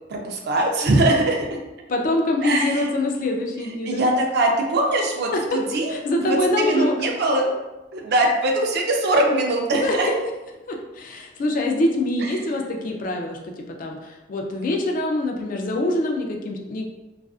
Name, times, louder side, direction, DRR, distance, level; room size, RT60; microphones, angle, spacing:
voice 1, 0.1-1.6 2.4-2.9 3.9-7.5 7.9-10.1, right 1 dB, 60° right, 1 dB, 0.4 m, -22 dB
voice 2, 1.9-4.1 5.3-5.6 5.9-6.9 9.8-10.0 10.7-13.5 13.8-16.8, left 1 dB, 50° left, 1 dB, 0.4 m, -24 dB
2.4 x 2.4 x 2.3 m, 1.1 s
head